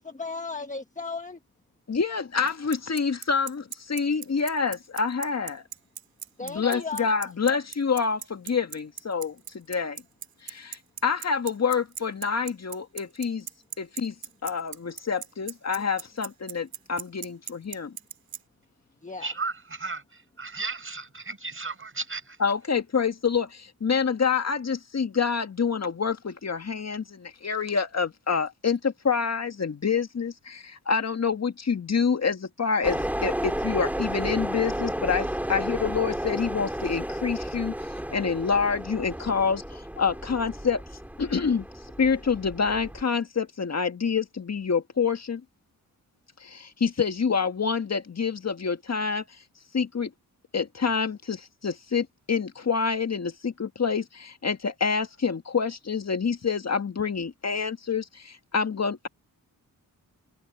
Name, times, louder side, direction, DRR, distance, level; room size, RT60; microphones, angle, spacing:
voice 1, 0.0-1.4 6.4-7.1 15.7-15.8 19.0-19.3, left 4 dB, 20° left, 1.4 m, -35 dB
voice 2, 1.9-5.6 6.4-10.0 10.4-13.5 13.8-14.2 14.4-17.9 22.4-37.7 38.1-40.8 41.2-41.7 42.0-45.4 46.4-49.2 49.7-50.1 50.5-59.1, left 5 dB, 45° left, 1.8 m, -27 dB
Bicycle, 2.5-18.4, right 8 dB, 80° right, 3.0 m, -37 dB
voice 3, 19.2-22.4, right 3 dB, 35° right, 5.1 m, -35 dB
sound 1, 32.8-43.0, equal, 5° right, 2.9 m, -32 dB
cardioid pair, 65°, 35 cm